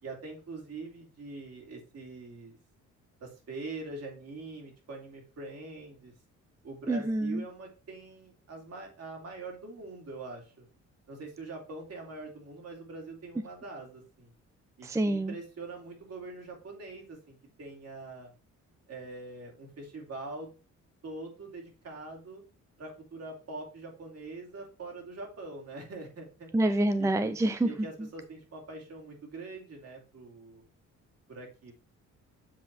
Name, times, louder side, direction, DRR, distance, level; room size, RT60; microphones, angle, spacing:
voice 1, 0.0-2.6 3.2-6.1 6.6-10.7 11.1-14.3 14.8-18.3 18.9-20.5 21.0-22.4 22.8-26.5 27.0-27.3 27.6-30.7 31.3-31.7, right 3 dB, 55° right, 0 dB, 3.1 m, -43 dB
voice 2, 6.9-7.4 14.8-15.3 26.5-27.7, right 1 dB, 10° right, 10 dB, 0.5 m, -27 dB
7.5 x 4.0 x 4.3 m, 0.34 s
cardioid pair, 90°, 30 cm